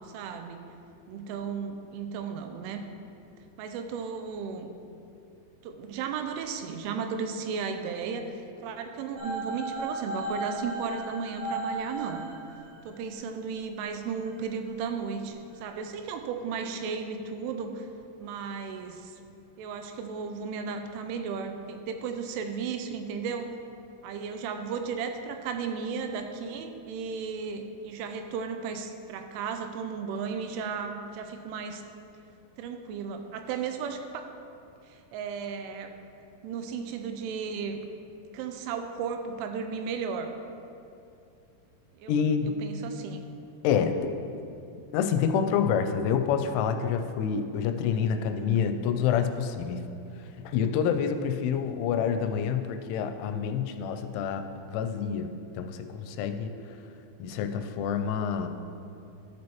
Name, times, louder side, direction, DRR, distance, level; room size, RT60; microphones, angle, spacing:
voice 1, 0.1-0.7 1.1-2.9 3.6-4.7 5.6-8.3 8.6-12.2 12.9-17.9 18.2-19.1 19.6-23.6 24.0-31.8 32.6-34.3 35.1-35.9 36.4-37.8 38.3-40.3 42.0-42.2 42.6-43.2, right 6 dB, 85° right, 6 dB, 3.1 m, -34 dB
sound 1, 9.2-13.0 14.2-14.3, right 2 dB, 55° right, 3.5 m, -35 dB
voice 2, 42.1-42.5 43.6-44.1 44.9-49.8 50.4-56.5 57.2-58.5, left 7 dB, 85° left, 7 dB, 3.0 m, -27 dB
13.0 x 6.3 x 3.0 m, 2.6 s
omnidirectional pair, 5.5 m